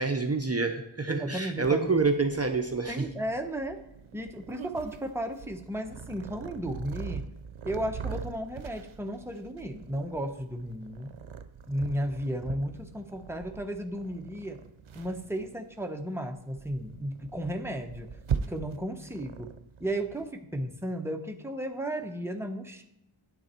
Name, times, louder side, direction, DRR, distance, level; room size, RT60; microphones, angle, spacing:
voice 1, 0.0-3.1, right 4 dB, 30° right, 4 dB, 0.8 m, -27 dB
voice 2, 1.1-1.9 2.9-3.8 4.1-7.3 7.6-11.1 11.7-14.6 14.9-18.1 18.5-19.5 19.8-22.8, right 1 dB, 5° right, 4 dB, 1.0 m, -34 dB
Purr, 1.6-20.3, right 6 dB, 80° right, 0.7 m, -41 dB
9.5 x 7.9 x 4.4 m, 0.81 s
wide cardioid pair, 50°, 48 cm